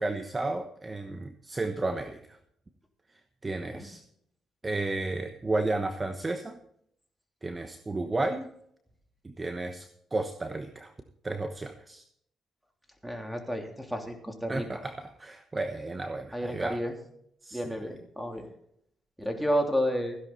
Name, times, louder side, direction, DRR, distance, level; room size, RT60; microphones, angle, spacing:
voice 1, 0.0-2.4 3.4-4.0 4.6-6.6 7.4-8.5 9.2-10.9 11.2-12.0 14.5-16.8 17.4-17.6, right 2 dB, 25° right, 7 dB, 1.0 m, -32 dB
voice 2, 13.0-14.7 16.3-16.9 17.5-18.5 19.2-20.2, equal, ahead, 3 dB, 3.1 m, -31 dB
15.5 x 11.0 x 4.0 m, 0.70 s
cardioid pair, 90°, 0 cm